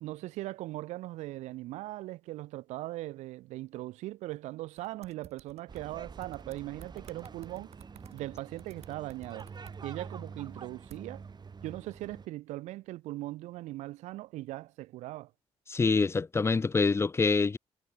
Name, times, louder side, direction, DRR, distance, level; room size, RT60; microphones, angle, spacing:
voice 1, 0.0-7.7 8.1-9.5 9.8-11.2 11.6-15.3, right 17 dB, 90° right, 0.5 m, -40 dB
sound 1, 4.8-5.8 6.2-9.8 10.9-11.0, right 10 dB, 65° right, 0.9 m, -53 dB
sound 2, 5.7-12.3, right 5 dB, 40° right, 0.7 m, -47 dB
voice 2, 15.7-17.6, left 4 dB, 25° left, 0.3 m, -26 dB
supercardioid pair, 60°, 12 cm